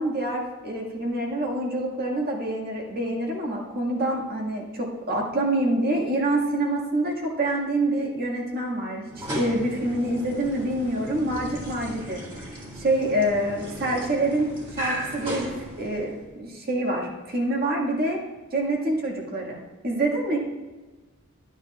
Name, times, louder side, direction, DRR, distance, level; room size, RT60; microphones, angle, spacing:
voice 1, 0.0-12.2 12.8-16.1 16.4-18.2 18.5-20.4, right 1 dB, 45° right, -2 dB, 1.8 m, -26 dB
sound 1, 9.1-16.3, right 1 dB, 25° right, 2.5 m, -36 dB
12.0 x 9.3 x 2.4 m, 1.2 s
head